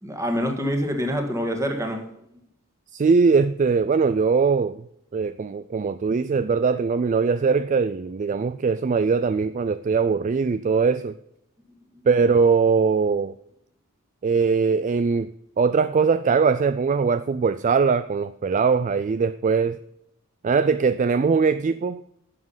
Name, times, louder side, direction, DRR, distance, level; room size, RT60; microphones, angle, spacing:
voice 1, 0.0-2.1, equal, 15° right, 1.8 m, -26 dB
voice 2, 2.9-4.8 5.1-11.1 12.1-13.3 14.2-15.3 15.6-19.8 20.4-22.0, right 5 dB, 35° right, 0.3 m, -21 dB
11.0 x 7.4 x 5.6 m
head